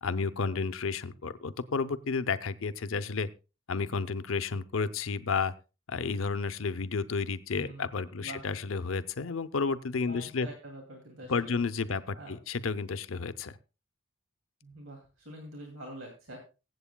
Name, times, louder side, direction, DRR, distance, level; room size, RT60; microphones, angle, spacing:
voice 1, 0.0-3.3 3.7-5.5 5.9-10.5 11.3-13.5, left 4 dB, 75° left, 12 dB, 0.7 m, -31 dB
voice 2, 7.6-7.9 8.2-8.4 10.0-11.6 12.1-12.3 14.6-16.4, right 1 dB, 70° right, 0 dB, 2.6 m, -45 dB
24.0 x 8.0 x 2.2 m, 0.31 s
head